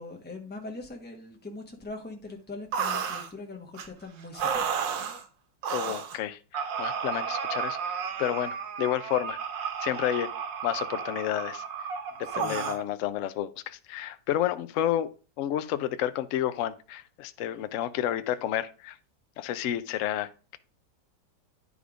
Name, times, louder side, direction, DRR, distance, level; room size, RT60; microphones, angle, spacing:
voice 1, 0.0-4.8 12.3-12.7, left 3 dB, 5° left, 1.0 m, -42 dB
sound 1, 2.7-3.3 3.7-3.9 4.3-5.2 5.6-6.2 6.5-12.8, right 7 dB, 80° right, 1.6 m, -32 dB
voice 2, 5.7-10.3 10.6-11.6 12.3-15.1 15.4-19.0 19.4-20.6, left 11 dB, 70° left, 0.7 m, -30 dB
9.8 x 3.6 x 4.9 m
omnidirectional pair, 2.0 m